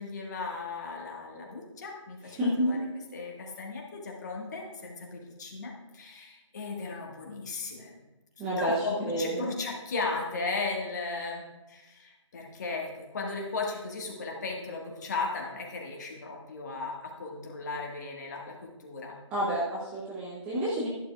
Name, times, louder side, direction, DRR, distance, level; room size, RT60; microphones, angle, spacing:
voice 1, 0.0-2.8 3.1-8.0 8.4-19.2, left 3 dB, 35° left, 0 dB, 1.7 m, -36 dB
voice 2, 2.2-2.7 8.4-9.5 19.3-20.9, equal, 10° right, -7 dB, 0.8 m, -30 dB
12.0 x 11.0 x 2.4 m, 1.1 s
figure-of-eight pair, 155°, 16 cm